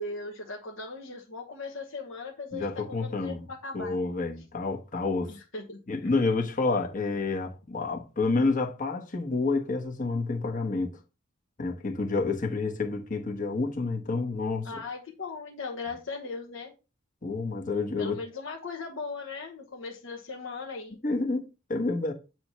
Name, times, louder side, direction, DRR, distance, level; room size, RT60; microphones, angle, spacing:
voice 1, 0.0-4.0 5.3-6.1 14.6-16.7 18.0-21.0, left 3 dB, 70° left, 1.1 m, -38 dB
voice 2, 2.5-3.4 3.7-5.4 5.9-11.0 11.6-14.7 17.2-18.2 21.0-22.1, left 3 dB, 40° left, 1.2 m, -29 dB
8.6 x 3.0 x 5.6 m
head